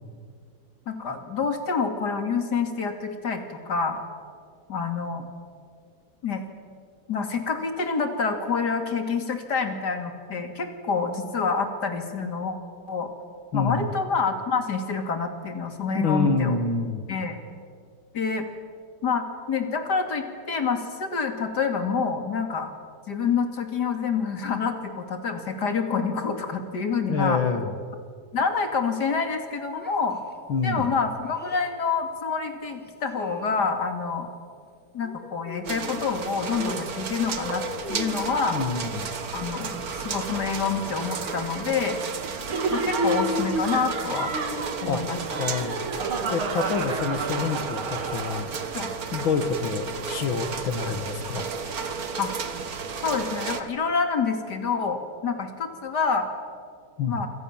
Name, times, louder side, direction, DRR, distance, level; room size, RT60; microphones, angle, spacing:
voice 1, 0.9-4.0 4.7-5.3 6.2-6.4 7.1-12.6 12.9-13.1 13.5-16.6 17.1-17.4 18.1-18.5 19.0-22.7 23.1-27.4 28.3-30.2 30.6-34.3 34.9-37.6 37.9-38.6 39.3-42.0 42.7-44.3 44.8-45.2 45.5-45.6 48.7-48.9 50.8-50.9 52.2-52.3 53.0-56.3 57.1-57.3, left 5 dB, 50° left, 6 dB, 3.1 m, -27 dB
voice 2, 13.5-13.9 15.9-17.0 27.1-27.7 30.5-30.9 38.5-39.1 44.8-45.0 45.4-45.8 46.3-48.5 49.1-51.5 57.0-57.2, left 5 dB, 65° left, 8 dB, 2.4 m, -27 dB
Child speech kid speaking, 29.8-31.7 32.7-33.9 35.0-36.2 36.5-38.3 40.8-41.7, left 1 dB, 5° left, 1.7 m, -41 dB
sound 1, 35.6-53.6, right 5 dB, 45° right, 1.8 m, -33 dB
Laughter, 42.5-48.8, right 2 dB, 70° right, 3.0 m, -30 dB
27.0 x 26.5 x 7.4 m, 2.1 s
omnidirectional pair, 2.4 m